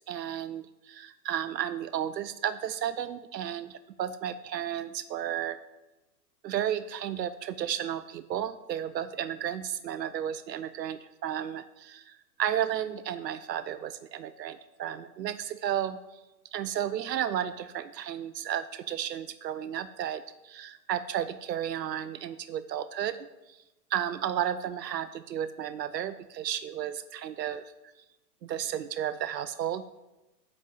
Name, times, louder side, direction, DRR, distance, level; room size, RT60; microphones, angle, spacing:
voice 1, 0.0-5.6 6.4-16.0 16.5-23.6 23.9-27.6 28.4-29.8, right 10 dB, 80° right, 12 dB, 0.7 m, -33 dB
7.8 x 5.4 x 7.6 m, 1.0 s
hypercardioid pair, 135°, 49 cm